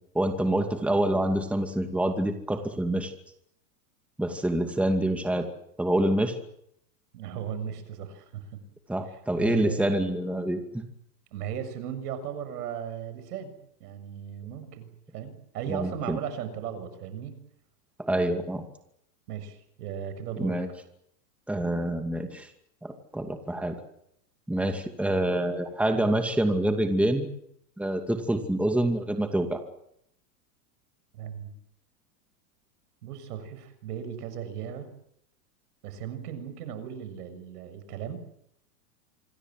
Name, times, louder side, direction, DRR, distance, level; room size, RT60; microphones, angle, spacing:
voice 1, 0.1-3.1 4.2-5.5 5.8-6.3 8.9-10.8 15.7-16.2 18.0-18.6 20.4-20.7 21.5-22.5 22.8-23.8 24.5-27.3 27.8-29.6, right 1 dB, 5° right, 5 dB, 2.4 m, -26 dB
voice 2, 7.1-8.6 9.4-9.9 11.3-13.5 13.8-17.4 19.3-20.6 31.1-31.6 33.0-34.9 35.8-38.2, right 8 dB, 75° right, 11 dB, 6.9 m, -36 dB
26.5 x 22.5 x 7.8 m, 0.74 s
supercardioid pair, 130°, 47 cm